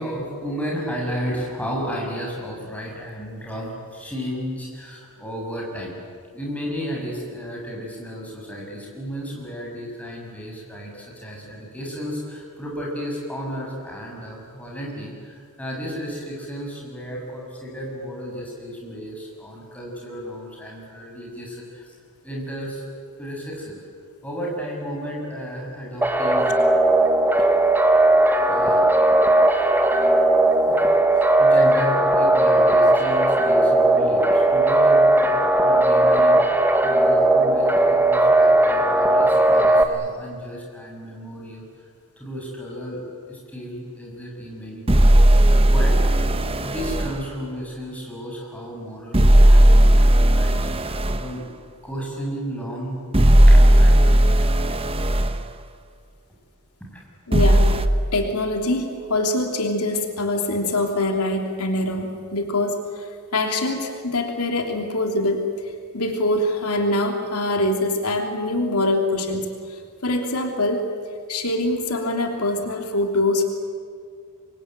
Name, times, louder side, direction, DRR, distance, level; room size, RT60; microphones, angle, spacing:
voice 1, 0.0-6.0 6.3-22.0 22.2-22.8 23.2-23.8 24.2-26.5 28.5-28.8 30.7-30.8 31.1-41.6 42.2-43.0 43.3-46.0 46.6-51.4 51.8-53.0 53.5-54.8 56.9-57.0, equal, 5° left, -2 dB, 7.3 m, -33 dB
sound 1, 26.0-39.8, right 2 dB, 10° right, 1.5 m, -17 dB
sound 2, 44.9-47.2 49.1-51.2 53.1-55.3 57.3-57.9, right 1 dB, 25° right, 1.1 m, -15 dB
voice 2, 57.3-57.7 58.1-62.8 63.3-65.4 65.9-70.9 71.3-73.4, left 1 dB, 85° left, 3 dB, 3.2 m, -24 dB
27.0 x 23.0 x 9.3 m, 2.1 s
head